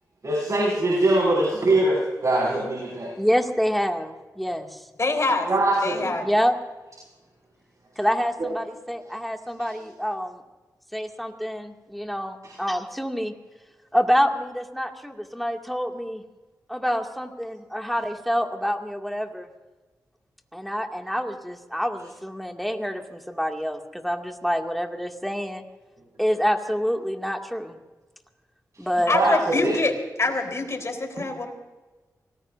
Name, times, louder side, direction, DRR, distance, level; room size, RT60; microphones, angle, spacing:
voice 1, 0.2-3.1 5.5-6.0 29.1-29.7, right 2 dB, 55° right, -4 dB, 5.9 m, -22 dB
voice 2, 3.2-4.9 6.2-6.6 8.0-10.4 10.9-13.3 13.9-16.2 16.7-19.5 20.5-25.6 26.2-27.8 28.8-29.1, equal, ahead, 2 dB, 2.3 m, -27 dB
voice 3, 5.0-5.5 5.8-6.2 29.1-29.9 30.2-31.5, left 3 dB, 45° left, 3 dB, 4.0 m, -25 dB
26.5 x 19.5 x 2.7 m, 1.2 s
cardioid pair, 60°, 7 cm